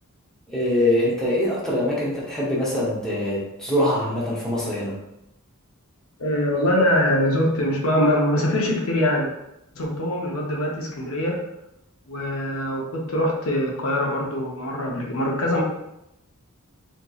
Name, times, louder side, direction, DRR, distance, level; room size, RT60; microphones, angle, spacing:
voice 1, 0.5-4.9, left 1 dB, 5° left, -8 dB, 0.7 m, -23 dB
voice 2, 6.2-9.3 9.8-11.4 12.1-15.6, left 1 dB, 75° left, -1 dB, 0.6 m, -23 dB
2.8 x 2.6 x 2.3 m, 0.85 s
head